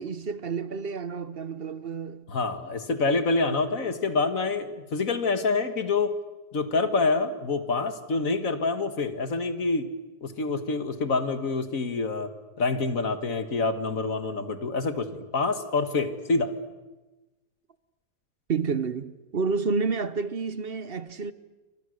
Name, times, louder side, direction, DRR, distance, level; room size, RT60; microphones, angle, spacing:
voice 1, 0.0-2.2 18.5-21.3, right 5 dB, 40° right, 0.9 m, -29 dB
voice 2, 2.3-6.1 6.5-9.9 10.2-12.3 12.6-16.5, left 3 dB, 50° left, 1.9 m, -26 dB
29.0 x 25.0 x 6.5 m
omnidirectional pair, 1.8 m